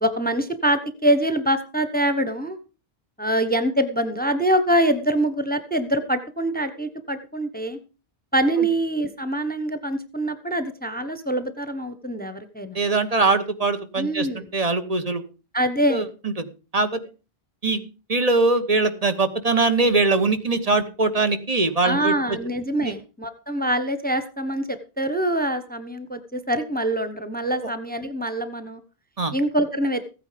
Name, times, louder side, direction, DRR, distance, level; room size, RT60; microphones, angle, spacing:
voice 1, 0.0-2.6 3.2-7.8 8.3-12.8 14.0-14.4 15.5-16.0 21.8-28.8 29.3-30.0, right 1 dB, 10° left, 11 dB, 1.0 m, -24 dB
voice 2, 12.7-15.2 15.9-16.0 16.4-16.5 16.7-17.0 17.6-17.8 18.1-22.4 22.8-22.9 29.2-29.3, right 3 dB, 35° right, 10 dB, 1.3 m, -22 dB
15.5 x 9.3 x 5.1 m, 0.34 s
omnidirectional pair, 1.1 m